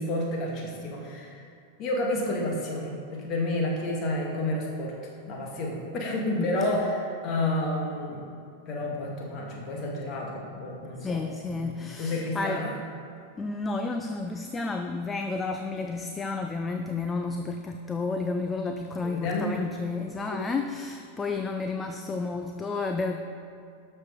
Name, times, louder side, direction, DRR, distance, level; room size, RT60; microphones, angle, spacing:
voice 1, 0.0-1.4 1.8-4.9 5.3-8.2 8.7-11.2 11.5-11.7 12.0-12.7 19.0-19.6, left 1 dB, 35° left, -1 dB, 2.1 m, -30 dB
voice 2, 6.3-6.8 11.0-12.7 13.4-23.2, left 3 dB, 15° left, 6 dB, 0.5 m, -31 dB
12.5 x 6.4 x 4.9 m, 2.4 s
figure-of-eight pair, 90°, 0 cm